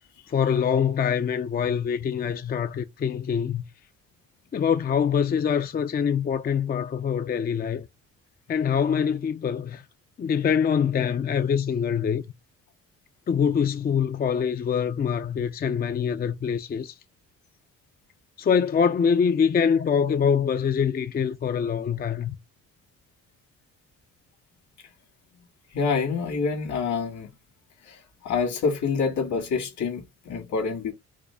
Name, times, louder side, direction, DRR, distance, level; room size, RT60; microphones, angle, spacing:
voice 1, 0.3-3.6 4.5-7.9 8.5-9.8 10.2-12.2 13.3-17.0 18.4-22.4, left 7 dB, 30° left, 0.4 m, -24 dB
voice 2, 25.7-27.3 27.9-28.0 28.2-30.9, left 5 dB, 70° left, 2.0 m, -27 dB
4.8 x 2.1 x 3.3 m
cardioid pair, 90°, 30 cm